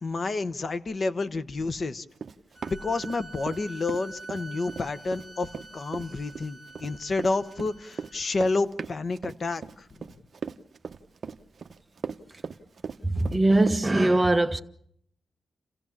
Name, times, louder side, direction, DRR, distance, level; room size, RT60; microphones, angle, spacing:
voice 1, 0.0-2.0 2.7-9.9, left 3 dB, 40° left, 1.0 m, -29 dB
Run, 2.2-3.6 3.9-13.8, right 5 dB, 50° right, 0.9 m, -38 dB
sound 1, 2.5-8.2, right 3 dB, 25° left, 6.0 m, -46 dB
voice 2, 13.0-14.6, right 2 dB, 15° right, 1.1 m, -21 dB
29.5 x 16.0 x 7.3 m
wide cardioid pair, 125°, 0 cm